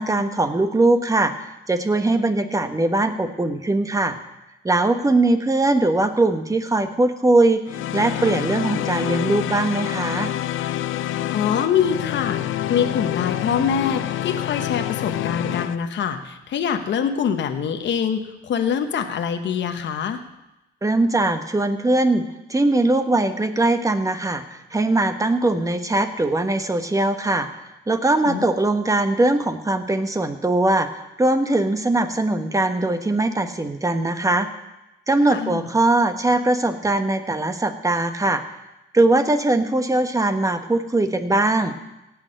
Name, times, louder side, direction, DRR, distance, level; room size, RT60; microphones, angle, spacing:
voice 1, 0.0-4.1 4.6-10.3 20.8-22.2 22.5-27.5 27.9-30.9 31.2-34.5 35.1-38.4 38.9-41.8, right 2 dB, 15° right, 8 dB, 1.2 m, -21 dB
sound 1, 7.7-15.8, left 13 dB, 80° left, 0.6 m, -27 dB
voice 2, 11.3-12.4 12.7-20.2 28.3-28.5 35.3-35.7, left 7 dB, 65° left, 7 dB, 1.1 m, -24 dB
17.0 x 6.4 x 6.6 m, 0.93 s
cardioid pair, 90°, 20 cm